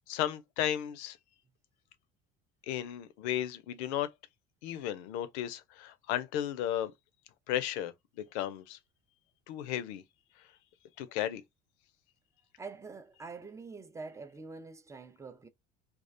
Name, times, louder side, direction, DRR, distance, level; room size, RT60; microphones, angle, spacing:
voice 1, 0.1-1.2 2.6-4.1 4.6-6.9 7.5-8.8 9.5-10.0 11.0-11.4, left 11 dB, 90° left, 0.5 m, -34 dB
voice 2, 12.6-15.5, right 4 dB, 10° right, 0.3 m, -45 dB
2.3 x 2.1 x 2.5 m
supercardioid pair, 85°, 32 cm